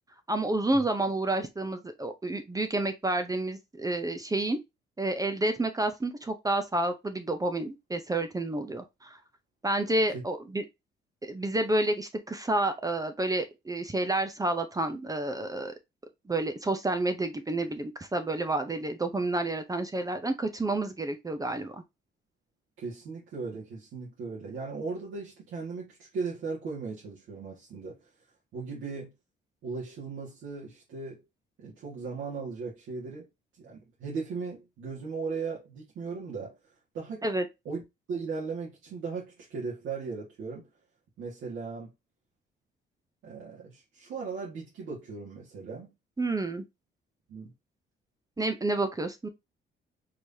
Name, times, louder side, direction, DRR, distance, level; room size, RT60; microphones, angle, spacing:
voice 1, 0.3-4.6 5.0-9.2 9.6-10.6 11.2-15.7 16.3-21.8 37.2-37.5 46.2-46.6 48.4-49.3, right 2 dB, 15° right, 0.7 m, -29 dB
voice 2, 22.8-28.0 28.5-29.1 29.6-31.2 31.6-33.3 33.6-36.6 36.9-37.2 37.6-37.8 38.1-40.7 41.2-41.9 43.2-45.9 47.3-47.5, right 4 dB, 75° right, 1.8 m, -37 dB
4.7 x 3.3 x 2.7 m
cardioid pair, 90°, 20 cm